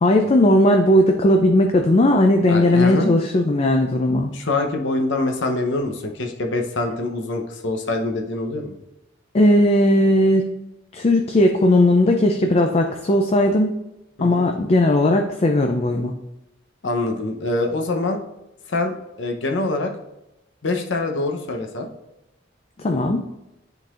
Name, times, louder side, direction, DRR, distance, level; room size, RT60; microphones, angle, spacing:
voice 1, 0.0-4.3 9.3-10.5 10.9-13.7 14.2-16.1 22.8-23.3, left 1 dB, 30° left, 3 dB, 0.4 m, -17 dB
voice 2, 2.5-3.2 4.3-8.8 14.2-14.5 16.8-18.2 18.7-19.9 20.6-21.9, left 2 dB, 65° left, 3 dB, 0.8 m, -24 dB
10.0 x 3.9 x 2.5 m, 0.93 s
head